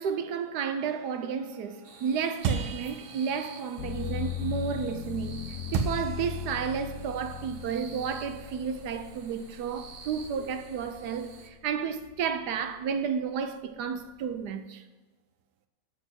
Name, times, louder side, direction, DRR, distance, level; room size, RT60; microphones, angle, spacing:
voice 1, 0.0-14.8, right 7 dB, 65° right, 1.1 m, -32 dB
sound 1, 0.8-5.3 5.7-9.2, right 6 dB, 85° right, 1.7 m, -38 dB
sound 2, 1.8-11.5, right 5 dB, 50° right, 0.6 m, -51 dB
sound 3, 3.8-11.6 12.1-12.9, left 11 dB, 70° left, 1.1 m, -39 dB
7.8 x 6.2 x 7.9 m
omnidirectional pair, 2.2 m